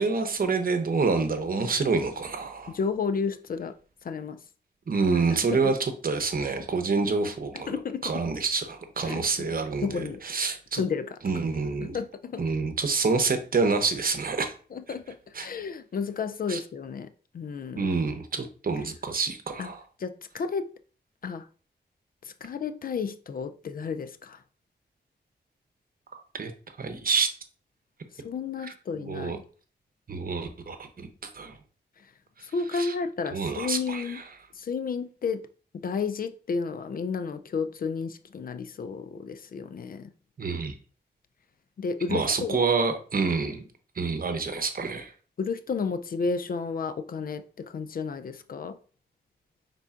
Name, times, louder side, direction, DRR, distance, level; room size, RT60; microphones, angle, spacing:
voice 1, 0.0-2.8 4.9-10.8 11.2-12.0 12.4-14.5 15.3-15.5 16.5-16.6 17.7-19.8 26.1-26.5 26.8-27.3 28.6-29.4 30.1-31.1 31.3-31.6 32.7-32.9 33.3-34.2 40.4-40.8 42.1-43.7 44.0-45.1, right 4 dB, 50° right, 0.9 m, -27 dB
voice 2, 2.7-3.7 4.0-4.4 5.5-5.6 7.5-8.2 9.0-9.5 9.8-10.2 10.8-11.2 11.8-12.4 14.7-17.1 17.3-17.9 19.6-19.7 20.0-20.7 21.2-21.4 22.4-24.4 28.2-29.4 32.4-34.2 34.6-35.4 35.7-40.1 41.8-42.6 45.4-48.8, left 5 dB, 55° left, 0.4 m, -32 dB
5.3 x 3.7 x 2.4 m
cardioid pair, 65°, 18 cm